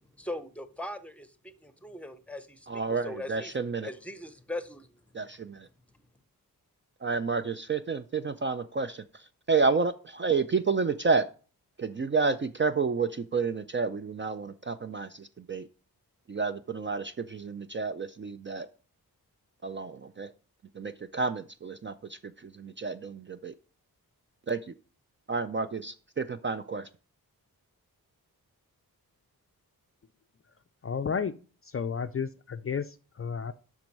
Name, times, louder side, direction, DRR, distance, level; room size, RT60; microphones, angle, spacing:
voice 1, 0.2-5.0, left 1 dB, 5° left, 11 dB, 0.7 m, -40 dB
voice 2, 2.7-3.9 5.1-5.7 7.0-9.0 9.5-11.3 11.8-15.7 16.3-18.7 19.6-20.3 20.8-23.5 24.5-24.6 25.3-26.9, right 4 dB, 35° right, 10 dB, 0.4 m, -30 dB
voice 3, 30.8-31.4 31.6-33.5, left 6 dB, 40° left, 10 dB, 0.4 m, -32 dB
7.5 x 6.2 x 5.3 m, 0.38 s
wide cardioid pair, 160°, 37 cm